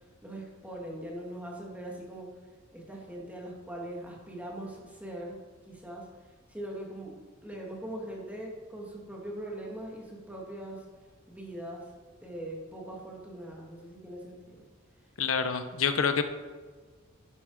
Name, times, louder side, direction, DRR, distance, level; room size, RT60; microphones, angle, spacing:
voice 1, 0.2-2.3 2.7-5.4 5.7-6.1 6.5-7.1 7.4-10.8 11.3-11.9 12.2-14.6, right 1 dB, 5° right, -2 dB, 2.5 m, -41 dB
voice 2, 15.2-16.2, left 6 dB, 90° left, 9 dB, 0.9 m, -27 dB
11.0 x 9.4 x 5.0 m, 1.5 s
head